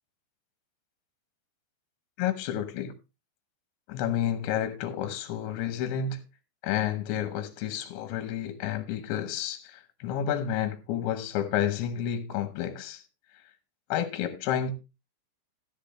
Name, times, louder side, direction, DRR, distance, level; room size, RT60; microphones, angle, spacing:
voice 1, 2.2-2.9 3.9-6.2 6.6-13.0 13.9-14.7, left 10 dB, 75° left, 3.1 m, -30 dB
13.5 x 10.0 x 3.0 m
omnidirectional pair, 5.4 m